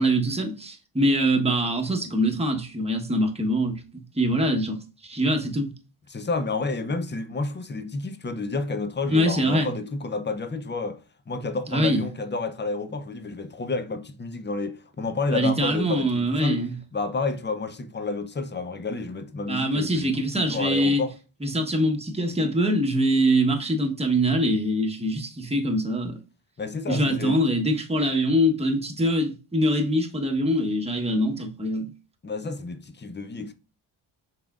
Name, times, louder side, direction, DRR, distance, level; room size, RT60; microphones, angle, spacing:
voice 1, 0.0-3.8 4.2-4.8 5.0-5.7 9.1-9.7 11.7-12.1 15.3-16.7 19.5-21.0 21.4-26.2 26.9-31.9, equal, 10° right, 1.0 m, -23 dB
voice 2, 6.1-11.0 11.3-16.6 16.9-21.1 26.6-27.4 32.2-33.5, left 3 dB, 20° left, 0.6 m, -30 dB
5.7 x 3.6 x 2.4 m
cardioid pair, 70°, 49 cm